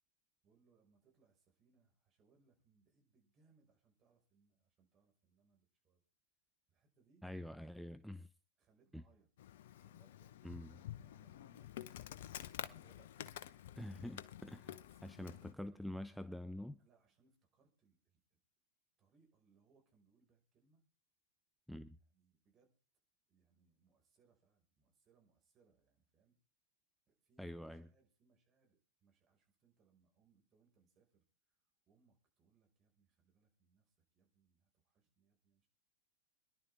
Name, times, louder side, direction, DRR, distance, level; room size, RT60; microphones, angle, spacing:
voice 1, 0.4-6.0 6.7-7.3 8.6-9.3 9.8-10.4 10.7-13.8 14.8-15.5 16.8-18.4 19.0-20.8 22.1-22.7 23.3-26.4 27.1-31.6 31.9-35.7, right 5 dB, 35° right, 5.6 m, -74 dB
voice 2, 7.2-8.3 8.9-9.0 10.4-10.7 13.8-16.8 21.7-22.0 27.4-27.8, left 1 dB, ahead, 0.7 m, -47 dB
Insect, 9.4-15.5, left 11 dB, 65° left, 0.8 m, -50 dB
26.0 x 11.5 x 3.6 m
hypercardioid pair, 100°, 0 cm